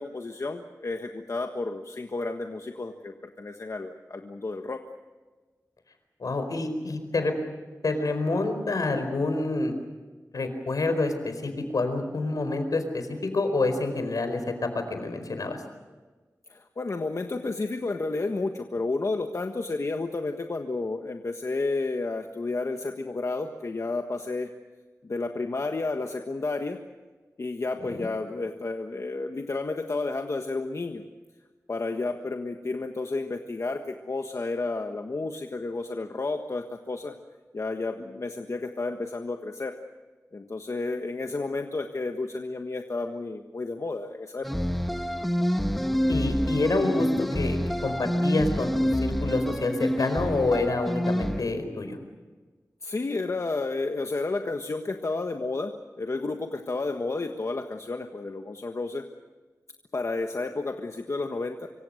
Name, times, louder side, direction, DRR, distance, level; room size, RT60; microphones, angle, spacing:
voice 1, 0.0-4.8 16.5-24.5 25.0-26.8 27.4-31.0 31.7-37.1 37.5-39.7 40.3-44.5 52.8-55.7 56.0-59.0 59.9-61.7, left 3 dB, 55° left, 4 dB, 1.5 m, -31 dB
voice 2, 6.2-7.3 7.8-9.7 10.3-13.0 13.3-15.6 27.8-28.1 46.1-52.0, left 2 dB, 80° left, 7 dB, 4.6 m, -27 dB
sound 1, 44.4-51.4, equal, ahead, 1.5 m, -27 dB
25.5 x 24.5 x 6.6 m, 1.3 s
wide cardioid pair, 95°, 6 cm